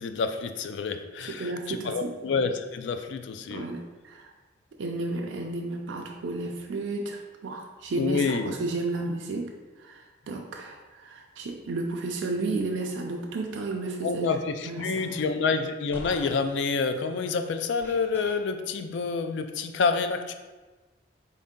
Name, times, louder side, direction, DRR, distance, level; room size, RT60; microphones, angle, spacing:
voice 1, 0.0-3.7 8.0-8.5 14.0-20.3, left 4 dB, 70° left, 8 dB, 0.3 m, -28 dB
voice 2, 1.3-2.1 3.5-4.3 4.8-9.5 9.8-14.3 14.7-15.3, right 3 dB, 80° right, 1 dB, 0.4 m, -32 dB
sound 1, 14.7-14.8 15.9-16.3 17.8-18.3, left 1 dB, 10° left, 0.6 m, -41 dB
4.2 x 2.7 x 3.6 m, 1.2 s
head